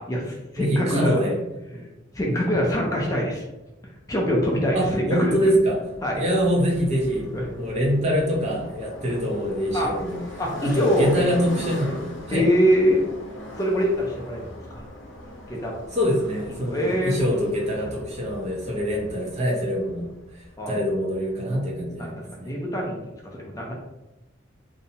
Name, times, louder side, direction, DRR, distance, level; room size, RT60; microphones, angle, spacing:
voice 1, 0.0-1.2 2.1-3.4 4.1-5.3 6.0-6.2 7.3-7.4 9.7-9.9 10.4-11.1 12.3-13.0 13.6-14.8 15.5-15.8 16.7-17.2 20.6-20.7 21.5-21.6 22.0-22.1 22.4-23.7, equal, 15° left, -2 dB, 0.4 m, -24 dB
voice 2, 0.6-1.4 1.7-1.8 2.3-2.4 4.7-5.8 6.1-10.2 10.6-12.5 15.9-22.5, equal, 35° right, -3 dB, 0.7 m, -25 dB
sound 1, 4.4-21.7, left 1 dB, 65° left, 0.6 m, -41 dB
2.6 x 2.1 x 2.7 m, 1.0 s
head